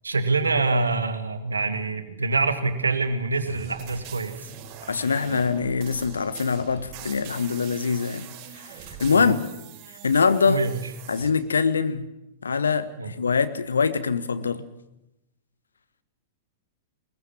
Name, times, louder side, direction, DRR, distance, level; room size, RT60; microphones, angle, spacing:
voice 1, 0.0-4.5 9.1-9.3 10.4-10.8 13.0-13.1, right 3 dB, 75° right, 9 dB, 2.1 m, -25 dB
sound 1, 3.4-11.3, right 8 dB, 35° right, 4.9 m, -42 dB
voice 2, 4.9-8.2 8.7-9.4 10.0-10.6 11.1-12.1 12.4-14.6, left 5 dB, 75° left, 11 dB, 1.4 m, -23 dB
21.5 x 20.5 x 7.3 m, 0.89 s
figure-of-eight pair, 100°, 0 cm